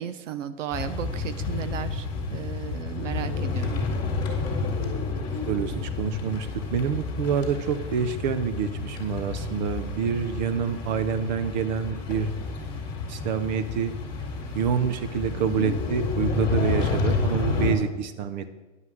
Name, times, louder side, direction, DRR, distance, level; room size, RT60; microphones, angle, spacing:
voice 1, 0.0-3.8, right 9 dB, 90° right, 12 dB, 0.9 m, -35 dB
sound 1, 0.7-17.7, left 4 dB, 10° left, 2.1 m, -30 dB
voice 2, 5.5-12.3 13.1-13.9 14.5-18.5, right 7 dB, 40° right, 12 dB, 0.8 m, -27 dB
9.8 x 5.5 x 7.8 m, 1.1 s
hypercardioid pair, 160°, 36 cm